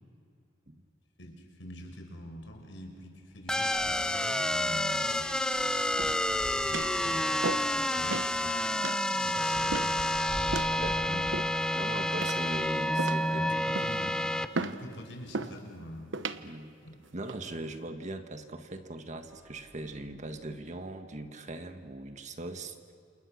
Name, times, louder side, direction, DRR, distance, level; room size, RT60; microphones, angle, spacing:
voice 1, 1.2-5.3 6.0-6.1 6.7-8.6 9.2-10.0 11.1-11.3 13.4-14.2 14.5-16.1 16.8-16.9, equal, 80° left, 2 dB, 5.2 m, -45 dB
sound 1, 2.5-2.6 3.0-3.1 3.4-12.9 13.6-14.9 15.6-15.7 16.0-16.1 17.8-17.9 18.5-18.8 19.2-20.4, equal, 15° right, 2.6 m, -48 dB
sound 2, 3.5-14.5, left 1 dB, 5° left, 0.8 m, -29 dB
sound 3, 6.0-6.3 6.7-7.0 7.4-7.8 8.1-8.3 8.8-9.0 9.7-10.0 10.5-10.8 11.3-11.7 12.2-12.6 13.0-13.3 13.7-14.0 14.5-14.8 15.3-15.6 16.1-16.4 17.0-17.4, right 3 dB, 85° right, 1.0 m, -35 dB
voice 2, 10.8-11.2 11.7-13.4 16.4-16.7 17.1-22.9, right 2 dB, 40° right, 7 dB, 1.6 m, -40 dB
29.0 x 28.0 x 6.5 m, 2.5 s
head